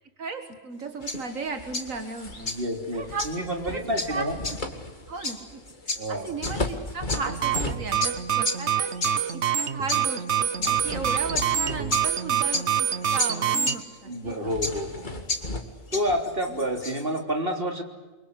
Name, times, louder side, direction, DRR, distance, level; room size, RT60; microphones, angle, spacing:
voice 1, 0.2-2.5 2.9-3.3 3.6-4.3 5.1-5.6 5.9-8.9 9.3-14.5 16.5-16.6, right 4 dB, 80° right, 6 dB, 2.2 m, -36 dB
sound 1, 0.7-17.2, left 2 dB, 70° left, 3.7 m, -34 dB
sound 2, 1.0-8.4 8.7-9.0 10.5-12.8 13.1-13.3 13.6-13.7 14.2-16.9, left 2 dB, 35° left, 2.5 m, -37 dB
voice 2, 2.4-4.4 6.0-6.2 14.1-15.1 15.9-17.8, equal, 45° right, 4 dB, 3.8 m, -29 dB
sound 3, 7.2-13.8, right 9 dB, 60° right, 1.4 m, -26 dB
29.5 x 24.0 x 8.3 m, 1.2 s
omnidirectional pair, 1.4 m